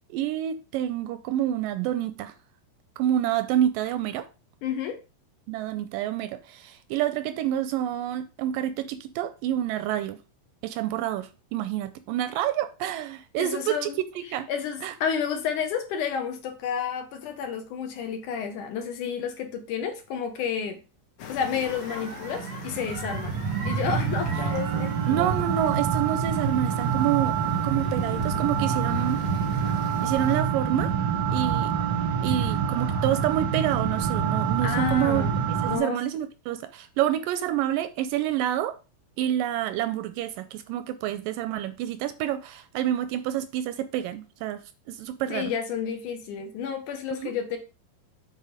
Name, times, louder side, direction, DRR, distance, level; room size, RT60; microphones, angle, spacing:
voice 1, 0.1-2.3 3.0-4.3 5.5-10.2 10.6-13.9 14.2-14.5 14.8-14.9 25.1-27.4 27.6-29.2 30.0-30.9 31.3-31.7 32.2-35.2 35.6-38.8 39.2-45.5 47.2-47.3, right 11 dB, 80° right, 2.1 m, -28 dB
voice 2, 4.6-5.0 13.4-13.9 14.5-20.8 21.3-23.4 23.6-24.9 34.6-36.0 45.3-47.6, left 7 dB, 65° left, 2.4 m, -30 dB
sound 1, 21.2-30.4, left 7 dB, 85° left, 3.3 m, -43 dB
sound 2, 21.7-35.8, right 7 dB, 60° right, 1.2 m, -27 dB
8.3 x 4.7 x 5.0 m
omnidirectional pair, 4.2 m